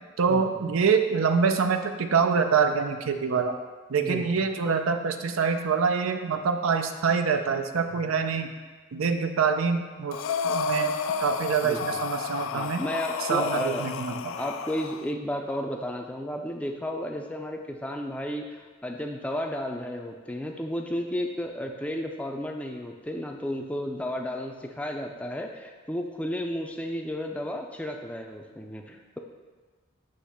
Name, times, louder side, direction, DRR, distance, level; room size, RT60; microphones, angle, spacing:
voice 1, 0.2-3.6 3.9-8.5 8.9-10.2 10.4-10.9 11.2-12.8 13.2-14.4, right 5 dB, 90° right, 7 dB, 0.5 m, -25 dB
Breathing, 10.1-15.0, left 6 dB, 80° left, 0.3 m, -31 dB
voice 2, 11.6-12.0 12.5-29.2, equal, 5° left, 2 dB, 0.4 m, -33 dB
6.5 x 3.0 x 5.7 m, 1.4 s
head